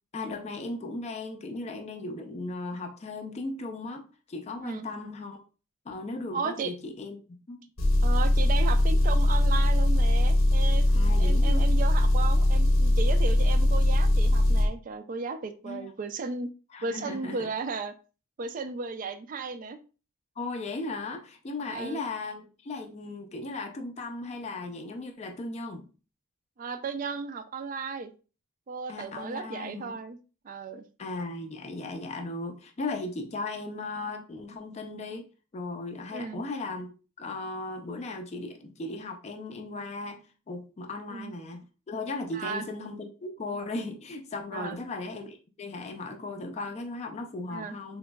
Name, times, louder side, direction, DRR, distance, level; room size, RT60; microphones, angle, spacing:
voice 1, 0.1-5.4 5.9-7.7 10.9-11.7 15.6-15.9 16.7-17.5 20.4-25.9 28.9-30.0 31.0-35.3 35.5-36.9 37.2-48.0, left 2 dB, 30° left, 0.4 m, -37 dB
voice 2, 6.3-6.7 8.0-16.5 16.8-17.9 18.4-19.8 21.7-22.0 26.6-28.1 28.7-30.2 30.4-30.8 36.1-36.4 41.1-41.3 42.3-42.6 44.5-44.8 47.5-47.7, right 4 dB, 40° right, 0.3 m, -35 dB
Engine, 7.8-14.7, left 1 dB, 75° left, 0.7 m, -21 dB
3.5 x 2.9 x 2.2 m
head